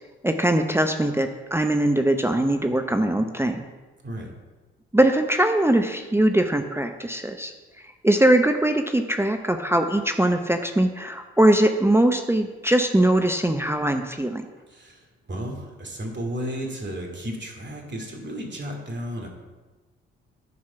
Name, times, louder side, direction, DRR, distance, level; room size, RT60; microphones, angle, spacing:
voice 1, 0.2-3.6 4.9-7.5 8.0-14.4, right 1 dB, 10° right, 5 dB, 0.8 m, -21 dB
voice 2, 14.7-19.3, equal, 35° right, 1 dB, 2.7 m, -33 dB
11.0 x 4.8 x 5.7 m, 1.3 s
hypercardioid pair, 40°, 30 cm